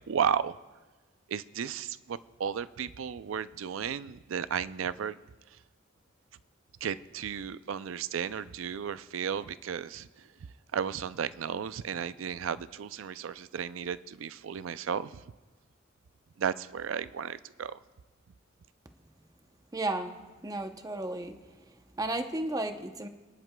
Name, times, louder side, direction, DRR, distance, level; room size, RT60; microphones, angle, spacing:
voice 1, 0.1-0.6 1.3-5.2 6.8-10.2 10.7-15.2 16.4-17.8, right 7 dB, 75° right, 15 dB, 0.4 m, -34 dB
voice 2, 19.7-20.2 20.4-21.3 22.0-23.1, right 2 dB, 20° right, 7 dB, 0.7 m, -33 dB
28.5 x 11.0 x 2.2 m, 1.2 s
head